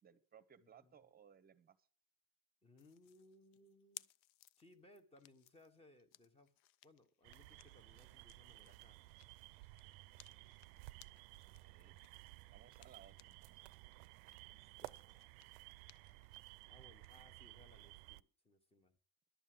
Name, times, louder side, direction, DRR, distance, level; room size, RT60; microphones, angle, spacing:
voice 1, 0.0-1.8 11.6-13.8, right 8 dB, 25° right, 15 dB, 0.8 m, -64 dB
voice 2, 0.6-0.9 2.6-4.1 4.6-6.5 6.8-9.0 14.5-15.3 16.7-19.0, left 1 dB, 15° left, 10 dB, 1.1 m, -66 dB
sound 1, 2.8-13.6 13.9-17.1, left 15 dB, 90° left, 0.5 m, -63 dB
sound 2, 7.2-18.2, right 21 dB, 85° right, 0.5 m, -56 dB
11.5 x 7.3 x 7.6 m, 0.44 s
cardioid pair, 140°, 39 cm